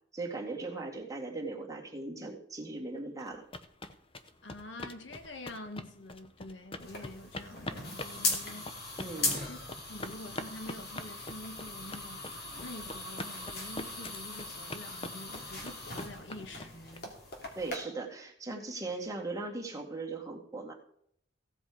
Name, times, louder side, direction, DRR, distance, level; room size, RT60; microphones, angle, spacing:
voice 1, 0.1-3.4 9.0-9.3 17.6-20.7, right 3 dB, 15° right, 1.9 m, -38 dB
sound 1, 3.2-17.0, left 2 dB, 30° left, 0.8 m, -43 dB
voice 2, 4.4-8.7 9.2-9.6 9.9-12.2 12.6-17.1, left 1 dB, 75° left, 1.5 m, -46 dB
sound 2, 6.8-17.8, left 3 dB, 55° left, 2.8 m, -39 dB
16.0 x 7.8 x 4.8 m
head